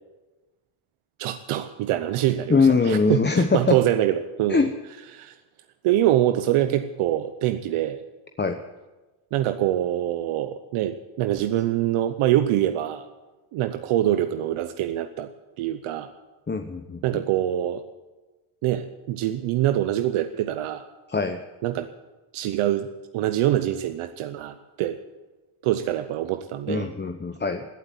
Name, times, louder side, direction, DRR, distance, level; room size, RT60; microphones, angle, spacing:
voice 1, 1.2-2.6 2.9-4.7 5.1-5.3 5.8-8.0 9.3-13.0 13.5-15.3 15.6-16.1 17.0-17.8 18.6-20.8 21.6-21.9 22.3-25.0 25.6-26.9, right 12 dB, 85° right, 9 dB, 0.9 m, -24 dB
voice 2, 2.5-3.8 4.5-4.7 8.4-8.6 16.5-17.2 21.1-21.4 26.7-27.7, left 4 dB, 20° left, 6 dB, 0.9 m, -22 dB
17.0 x 8.2 x 9.3 m, 1.2 s
cardioid pair, 85°, 49 cm